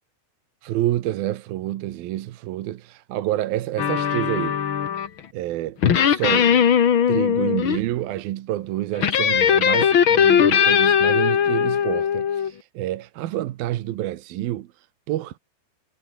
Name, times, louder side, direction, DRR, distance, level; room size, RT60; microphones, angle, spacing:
voice 1, 0.6-4.6 5.3-5.8 6.1-6.7 7.1-15.4, right 14 dB, 70° right, 2.6 m, -28 dB
sound 1, 3.8-5.2 5.8-7.8 9.0-12.5, left 8 dB, 80° left, 1.1 m, -19 dB
omnidirectional pair, 5.0 m